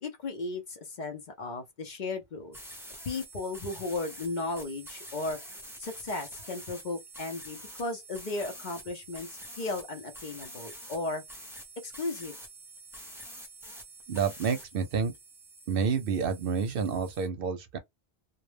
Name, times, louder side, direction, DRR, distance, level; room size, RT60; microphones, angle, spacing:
voice 1, 0.0-2.6 3.1-5.4 5.8-11.2 11.8-12.3, left 2 dB, 55° left, 0.6 m, -35 dB
sound 1, 2.5-17.3, right 1 dB, 5° right, 0.5 m, -47 dB
voice 2, 14.1-15.1 15.7-17.8, right 6 dB, 65° right, 0.7 m, -29 dB
2.2 x 2.0 x 3.1 m
omnidirectional pair, 1.1 m